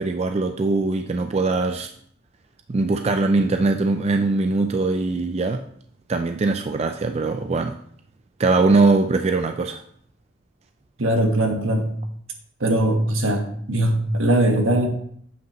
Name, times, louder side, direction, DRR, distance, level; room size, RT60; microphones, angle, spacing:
voice 1, 0.0-1.9 2.7-5.6 6.1-7.8 8.4-9.8, right 3 dB, 30° right, 0.3 m, -21 dB
voice 2, 11.0-11.9 12.6-13.4 13.7-14.9, right 1 dB, 80° right, 1.4 m, -20 dB
8.0 x 7.9 x 3.0 m
head